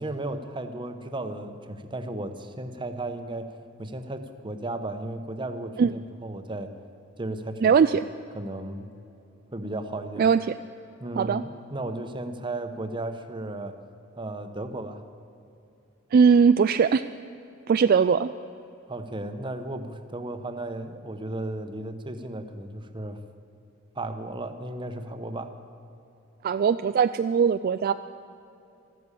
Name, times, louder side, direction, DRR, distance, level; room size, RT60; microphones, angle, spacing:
voice 1, 0.0-3.5 3.8-6.7 7.2-7.8 8.3-8.9 9.5-10.3 11.0-13.8 14.1-15.0 18.9-23.2 23.9-25.5, right 2 dB, 25° right, 8 dB, 0.9 m, -34 dB
voice 2, 7.6-8.0 10.2-10.4 11.2-11.4 16.1-17.0 17.7-18.3 26.4-27.9, right 6 dB, 50° right, 11 dB, 0.3 m, -20 dB
14.0 x 12.5 x 8.3 m, 2.7 s
head